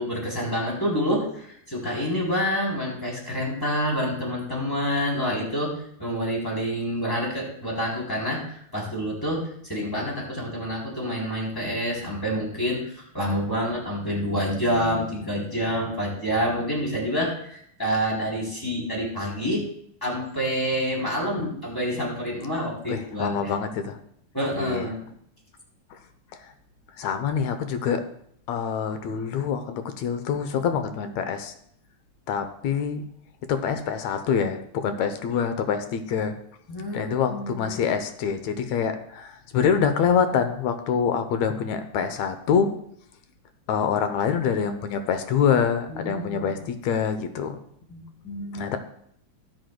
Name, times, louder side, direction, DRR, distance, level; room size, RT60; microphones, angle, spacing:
voice 1, 0.0-19.7 20.0-23.5 24.3-25.0 36.7-37.8 45.9-46.5 47.9-48.8, equal, 5° left, -4 dB, 3.2 m, -28 dB
voice 2, 22.9-24.0 24.6-24.9 27.0-28.0 28.5-31.5 32.3-33.1 33.5-36.3 36.9-42.7 43.7-47.6 48.5-48.8, left 7 dB, 75° left, 8 dB, 1.9 m, -25 dB
17.5 x 7.8 x 2.2 m, 0.67 s
omnidirectional pair, 3.5 m